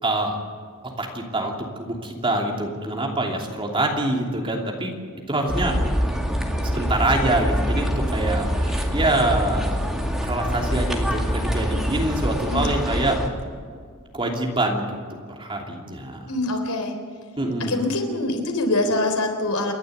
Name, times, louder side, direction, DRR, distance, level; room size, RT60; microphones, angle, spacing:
voice 1, 0.0-0.4 1.0-4.9 5.3-5.7 6.7-9.7 10.2-13.2 14.1-14.9 15.4-16.3 17.4-17.8, right 1 dB, 25° right, 1 dB, 3.0 m, -25 dB
sound 1, 5.5-13.3, equal, ahead, 2.3 m, -25 dB
voice 2, 16.3-16.9 17.7-19.7, left 2 dB, 80° left, 4 dB, 3.7 m, -24 dB
28.5 x 12.0 x 8.0 m, 2.1 s
head